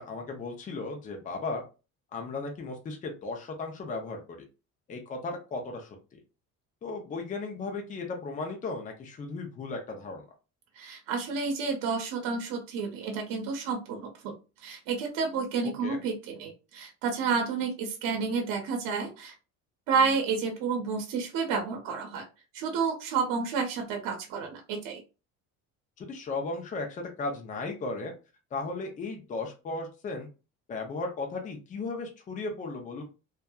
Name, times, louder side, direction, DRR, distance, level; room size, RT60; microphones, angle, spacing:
voice 1, 0.0-1.6 2.1-4.4 4.9-6.2 6.8-10.2 15.8-16.0 26.0-28.1 28.5-30.3 30.7-33.0, left 3 dB, 25° left, 3 dB, 0.5 m, -36 dB
voice 2, 10.8-14.3 14.6-19.3 19.9-22.2 22.5-25.0, right 5 dB, 70° right, 3 dB, 0.8 m, -30 dB
2.6 x 2.3 x 2.2 m, 0.31 s
cardioid pair, 145°, 32 cm